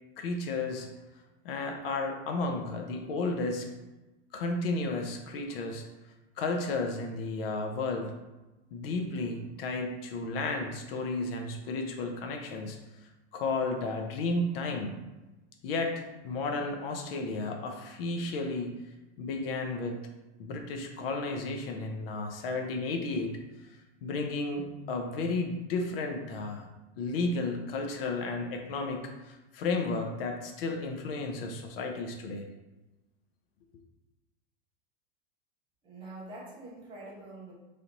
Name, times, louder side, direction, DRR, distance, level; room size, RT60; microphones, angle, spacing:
voice 1, 0.2-0.9 1.4-3.7 4.3-5.9 6.4-8.1 8.7-12.8 13.3-14.9 15.6-18.7 19.2-20.0 20.4-23.3 24.0-26.7 27.0-32.5, left 3 dB, 65° left, 3 dB, 0.6 m, -33 dB
voice 2, 35.8-37.5, right 2 dB, 15° right, -5 dB, 0.6 m, -45 dB
3.3 x 2.9 x 3.9 m, 1.1 s
supercardioid pair, 170°, 32 cm